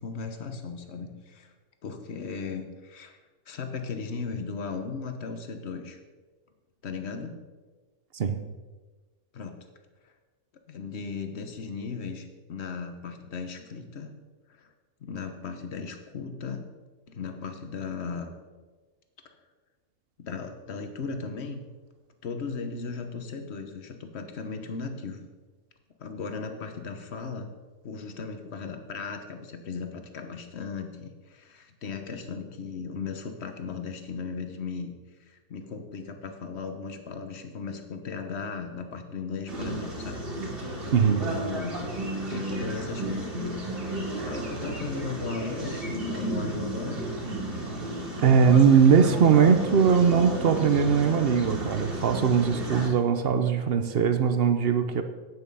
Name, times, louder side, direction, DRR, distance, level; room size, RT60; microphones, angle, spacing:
voice 1, 0.0-1.5 1.8-3.2 3.5-6.0 6.8-7.4 9.3-9.5 10.0-10.1 10.7-14.1 14.5-14.7 15.0-16.6 17.1-18.3 20.2-21.6 22.2-25.2 26.0-27.5 27.8-34.9 35.3-40.2 40.6-40.8 41.3-43.4 43.9-47.0, left 5 dB, 50° left, 7 dB, 1.2 m, -37 dB
sound 1, 39.5-52.9, right 1 dB, 35° right, 2.2 m, -33 dB
voice 2, 40.9-41.3 48.2-55.0, right 6 dB, 55° right, 8 dB, 0.7 m, -20 dB
9.3 x 8.8 x 5.5 m, 1.3 s
omnidirectional pair, 1.6 m